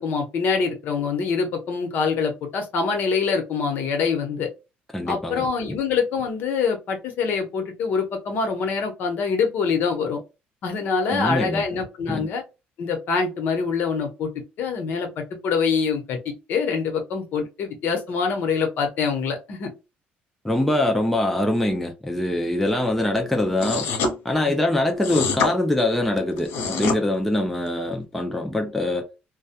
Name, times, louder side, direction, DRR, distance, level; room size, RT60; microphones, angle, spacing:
voice 1, 0.0-4.5 5.1-10.2 10.6-12.4 12.8-14.3 14.6-19.7 24.4-24.6, left 5 dB, 60° left, 0.8 m, -25 dB
voice 2, 4.9-5.8 11.1-11.6 12.1-12.3 20.4-23.9 24.2-29.1, left 1 dB, 5° left, 0.4 m, -23 dB
sound 1, 23.6-24.1 25.0-25.5 26.4-27.0, left 4 dB, 90° left, 0.7 m, -24 dB
2.2 x 2.1 x 2.7 m
cardioid pair, 145°, 4 cm